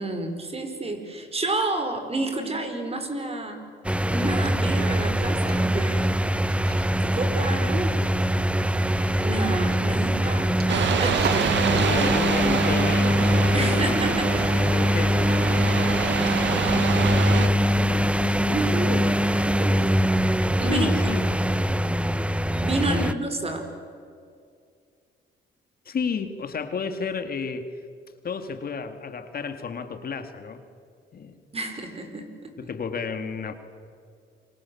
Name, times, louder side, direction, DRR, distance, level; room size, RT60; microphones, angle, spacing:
voice 1, 0.0-3.6 4.1-6.1 7.0-7.9 9.2-11.5 13.5-14.6 18.5-21.3 22.6-23.7 31.5-32.5, right 2 dB, 30° right, 6 dB, 5.1 m, -30 dB
sound 1, 3.8-23.1, equal, 5° right, 0.9 m, -23 dB
sound 2, 6.4-14.0, right 5 dB, 50° right, 2.6 m, -41 dB
sound 3, 10.7-17.5, right 8 dB, 70° right, 1.9 m, -27 dB
voice 2, 11.7-13.2 13.6-14.1 14.5-15.4 16.9-19.2 20.7-21.3 22.9-23.3 25.9-27.7 28.2-30.6 31.1-31.4 32.6-33.5, left 5 dB, 50° left, 8 dB, 2.2 m, -32 dB
28.0 x 24.5 x 7.2 m, 2.2 s
cardioid pair, 90°, 20 cm